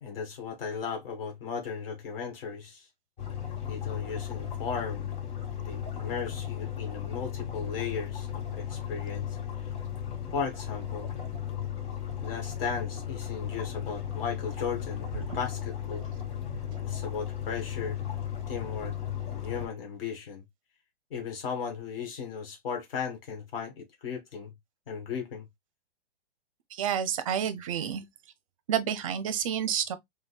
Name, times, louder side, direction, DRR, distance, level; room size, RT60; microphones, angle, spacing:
voice 1, 0.0-2.9 3.7-5.2 5.6-9.3 10.3-11.1 12.2-16.1 16.8-18.0 18.5-18.9 19.3-20.4 21.1-24.5 24.9-25.4, left 6 dB, 60° left, 1.6 m, -36 dB
sound 1, 3.2-19.7, left 9 dB, 45° left, 2.2 m, -35 dB
voice 2, 26.7-28.0 28.7-30.0, right 9 dB, 35° right, 0.5 m, -29 dB
5.1 x 2.2 x 2.3 m
hypercardioid pair, 165°, 32 cm